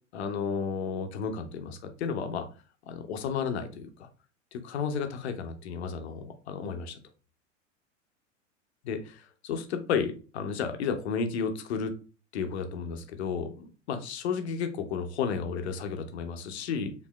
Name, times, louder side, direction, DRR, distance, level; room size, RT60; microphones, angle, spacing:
voice 1, 0.1-2.5 2.9-4.1 4.5-7.0 8.8-11.9 12.3-16.9, left 6 dB, 60° left, 7 dB, 0.7 m, -32 dB
4.3 x 2.7 x 2.2 m, 0.36 s
figure-of-eight pair, 85°, 37 cm